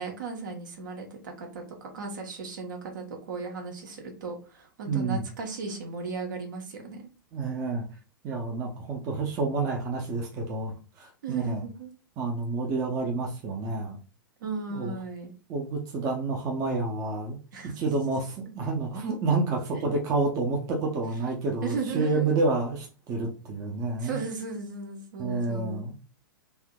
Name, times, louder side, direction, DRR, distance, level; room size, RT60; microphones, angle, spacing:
voice 1, 0.0-7.1 11.2-11.9 14.4-15.3 17.5-17.7 19.7-19.8 21.6-22.4 24.0-25.9, right 4 dB, 60° right, 2 dB, 0.9 m, -36 dB
voice 2, 4.9-5.2 7.3-7.9 8.2-11.6 12.2-14.0 14.7-14.9 15.5-17.4 17.8-24.2 25.2-25.9, right 3 dB, 30° right, 0 dB, 0.6 m, -29 dB
3.4 x 2.7 x 2.2 m, 0.34 s
figure-of-eight pair, 100°, 12 cm